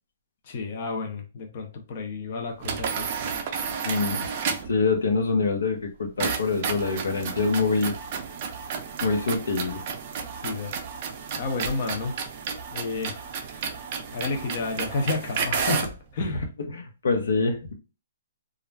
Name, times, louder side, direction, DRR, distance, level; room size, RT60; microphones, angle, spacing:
voice 1, 0.4-3.1 10.4-10.8 11.4-12.2 12.7-13.2 13.5-13.7 14.1-16.4, left 3 dB, 40° left, 0.4 m, -31 dB
sound 1, 2.6-4.8 6.2-16.0, right 6 dB, 35° right, 0.4 m, -32 dB
voice 2, 3.8-4.3 4.7-7.9 9.0-9.8 16.7-17.7, left 4 dB, 90° left, 0.7 m, -25 dB
2.3 x 2.1 x 3.2 m
hypercardioid pair, 165°, 0 cm